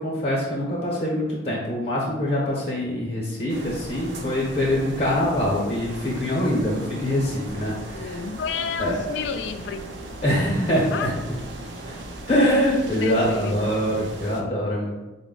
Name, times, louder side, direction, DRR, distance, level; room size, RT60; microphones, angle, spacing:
voice 1, 0.0-8.2 8.8-9.0 10.2-11.1 11.9-12.0 12.3-14.9, equal, 35° left, -5 dB, 0.8 m, -24 dB
sound 1, 3.5-14.4, right 1 dB, 75° right, 0.6 m, -38 dB
voice 2, 7.9-9.8 10.9-11.1 13.0-13.7, left 5 dB, 70° left, 8 dB, 0.3 m, -30 dB
4.6 x 2.1 x 3.7 m, 1.1 s
head